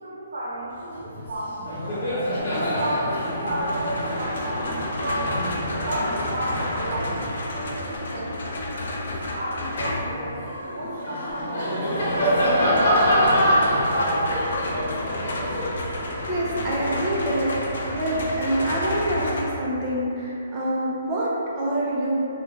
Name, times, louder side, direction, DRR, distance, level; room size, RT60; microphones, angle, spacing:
voice 1, 0.0-2.0 2.6-5.4 5.8-8.9 9.3-13.3 13.9-15.4, right 1 dB, 75° right, -8 dB, 0.8 m, -32 dB
sound 1, 0.6-8.2, equal, 50° right, 1.2 m, -37 dB
Laughter, 1.1-1.3 1.6-8.3 8.8-17.0, equal, 50° left, 1.0 m, -26 dB
sound 2, 2.7-10.2 11.9-19.4, left 1 dB, 65° left, 0.5 m, -31 dB
voice 2, 16.3-22.3, right 1 dB, 20° right, -6 dB, 0.5 m, -26 dB
3.0 x 2.2 x 3.5 m, 2.9 s
hypercardioid pair, 165°, 0 cm